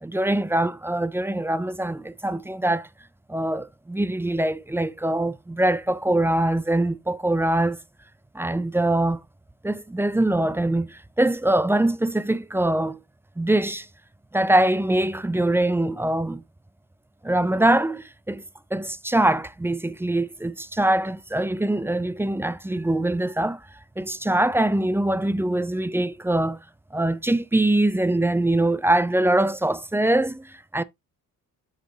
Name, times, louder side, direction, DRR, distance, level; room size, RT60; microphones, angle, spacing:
voice 1, 0.0-2.9 3.3-7.8 8.3-9.2 9.6-13.0 13.4-13.9 14.3-16.4 17.2-18.4 18.7-23.6 24.0-26.6 26.9-30.8, right 1 dB, 5° right, 0.4 m, -23 dB
8.0 x 6.5 x 2.7 m
cardioid pair, 115°, 33 cm